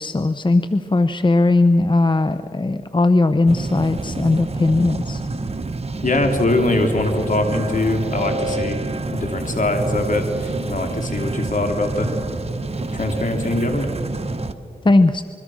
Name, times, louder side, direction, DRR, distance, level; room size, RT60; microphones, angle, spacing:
voice 1, 0.0-5.2 14.8-15.2, left 2 dB, 35° left, 11 dB, 0.8 m, -18 dB
sound 1, 3.5-14.5, right 3 dB, 45° right, 1.3 m, -27 dB
voice 2, 6.0-8.8 9.1-12.1 12.9-13.9, left 2 dB, 60° left, 4 dB, 3.3 m, -22 dB
26.5 x 22.5 x 6.4 m, 2.3 s
cardioid pair, 50°, 15 cm